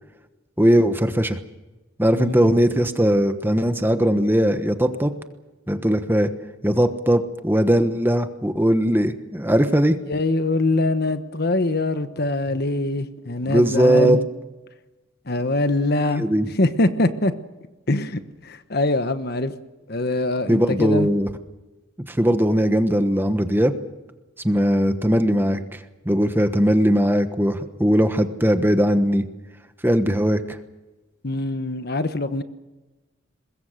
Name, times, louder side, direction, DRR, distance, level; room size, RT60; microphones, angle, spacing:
voice 1, 0.6-1.4 2.0-5.1 5.7-6.3 6.6-10.0 13.5-14.2 16.2-16.5 20.5-21.3 22.1-23.7 24.4-25.8 26.0-29.2 29.8-30.6, equal, 10° right, 1.1 m, -19 dB
voice 2, 2.1-2.5 10.1-14.2 15.3-16.3 16.6-17.3 17.9-19.5 19.9-21.1 31.2-32.4, left 2 dB, 50° left, 1.2 m, -23 dB
23.5 x 21.5 x 6.6 m
head